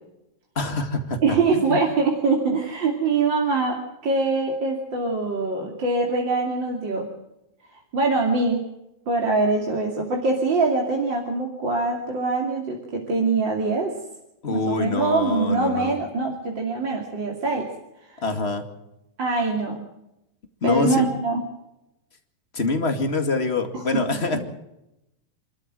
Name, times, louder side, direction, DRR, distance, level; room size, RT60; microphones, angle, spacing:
voice 1, 0.5-1.8 14.4-16.0 18.2-18.6 20.6-21.1 22.5-24.4, left 3 dB, 25° left, 5 dB, 1.7 m, -25 dB
voice 2, 1.2-3.8 4.0-7.1 7.9-8.6 9.1-13.9 14.5-17.7 18.1-18.2 19.2-19.8 20.6-21.4 23.7-23.8, right 3 dB, 35° right, 0 dB, 3.0 m, -23 dB
28.5 x 13.0 x 7.7 m, 0.89 s
omnidirectional pair, 4.1 m